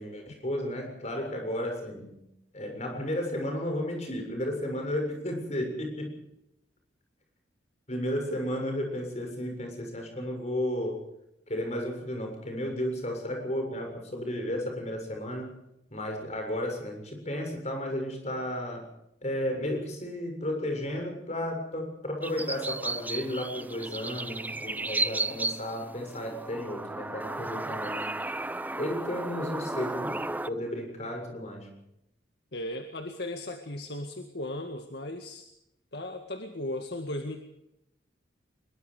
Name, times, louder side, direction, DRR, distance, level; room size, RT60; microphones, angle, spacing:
voice 1, 0.0-2.2 2.5-6.2 7.9-11.0 11.5-15.6 15.9-18.8 19.2-28.2 28.7-31.7, left 1 dB, 35° left, 3 dB, 7.2 m, -33 dB
sound 1, 22.2-30.5, right 2 dB, 10° right, 0.7 m, -34 dB
voice 2, 32.5-35.5 35.9-37.4, left 1 dB, 60° left, 5 dB, 2.0 m, -36 dB
24.5 x 22.5 x 5.0 m, 0.82 s
head